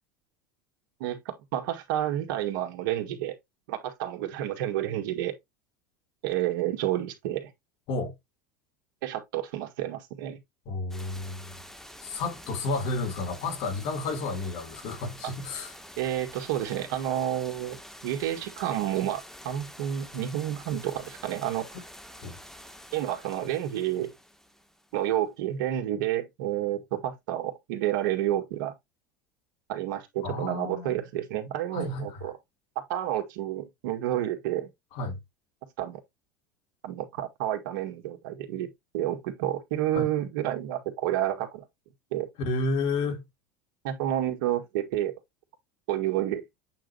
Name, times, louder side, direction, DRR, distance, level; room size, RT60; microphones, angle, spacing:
voice 1, 1.0-3.4 3.7-5.3 6.2-7.5 9.0-10.4 15.5-15.6 16.0-17.8 18.0-21.8 22.9-24.1 24.9-28.7 29.7-32.3 32.9-34.7 35.8-36.0 36.8-38.7 38.9-41.6 42.1-42.3 43.8-45.1 45.9-46.5, right 12 dB, 75° right, 2.1 m, -30 dB
voice 2, 10.7-11.6 12.0-15.7 22.2-22.4 30.2-30.9 31.7-32.3 34.9-35.2 39.9-40.1 42.4-43.2, left 3 dB, 60° left, 2.7 m, -31 dB
sound 1, 10.9-25.2, equal, 5° left, 1.5 m, -47 dB
8.5 x 3.8 x 3.3 m
hypercardioid pair, 90°, 11 cm